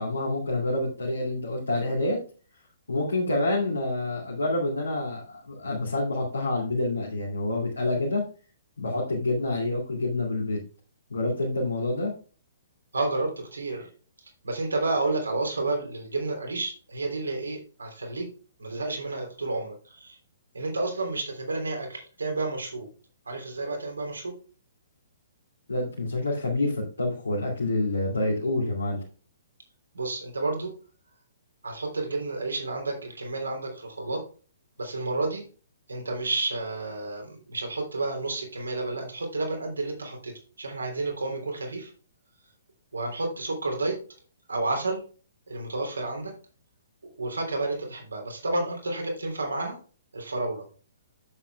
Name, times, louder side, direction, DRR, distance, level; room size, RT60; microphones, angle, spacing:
voice 1, 0.0-2.2 2.9-8.2 8.8-10.6 11.1-12.1 25.7-29.0, left 2 dB, 70° left, -3 dB, 2.5 m, -27 dB
voice 2, 12.9-13.9 14.4-18.3 18.6-20.2 20.5-22.9 23.3-24.3 29.9-30.7 31.6-34.2 34.8-35.4 35.9-40.3 40.6-41.9 42.9-43.9 44.5-45.0 45.5-46.3 47.2-49.8 50.1-50.6, right 2 dB, 70° right, 2 dB, 3.3 m, -30 dB
9.7 x 7.6 x 2.3 m, 0.38 s
figure-of-eight pair, 120°, 0 cm